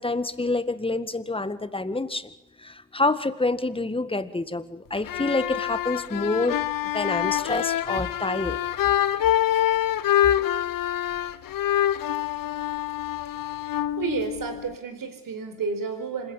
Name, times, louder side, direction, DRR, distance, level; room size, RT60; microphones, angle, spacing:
voice 1, 0.0-2.3 2.6-8.6, left 2 dB, 15° left, 12 dB, 1.8 m, -27 dB
sound 1, 5.0-14.8, left 12 dB, 55° left, 1.0 m, -26 dB
voice 2, 14.0-16.3, right 4 dB, 55° right, 8 dB, 4.6 m, -31 dB
26.5 x 15.5 x 7.4 m, 0.94 s
hypercardioid pair, 50°, 40 cm